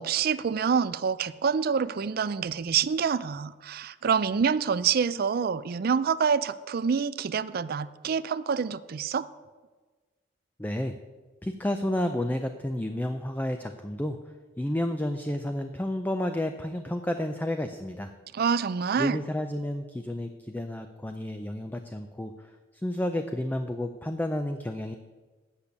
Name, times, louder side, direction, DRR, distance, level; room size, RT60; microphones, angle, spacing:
voice 1, 0.0-9.3 18.3-19.2, right 6 dB, 55° right, 15 dB, 0.4 m, -27 dB
voice 2, 10.6-11.0 11.4-14.2 14.6-18.1 19.0-22.5 22.8-25.0, left 1 dB, 10° left, 7 dB, 0.4 m, -31 dB
8.2 x 6.8 x 8.4 m, 1.3 s
head